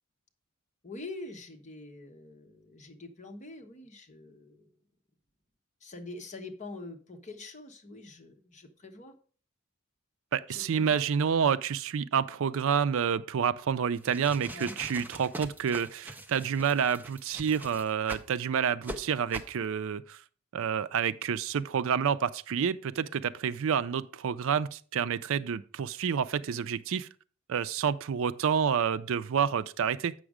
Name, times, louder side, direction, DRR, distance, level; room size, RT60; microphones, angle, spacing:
voice 1, 0.8-4.7 5.8-9.1 10.5-11.0 14.5-14.8, left 2 dB, 35° left, 1.1 m, -45 dB
voice 2, 10.3-20.2 20.5-27.1 27.5-30.1, right 7 dB, 65° right, 0.4 m, -29 dB
sound 1, 13.9-18.3 18.8-19.0 19.3-19.6, right 1 dB, 10° right, 0.6 m, -42 dB
7.9 x 6.2 x 4.9 m
head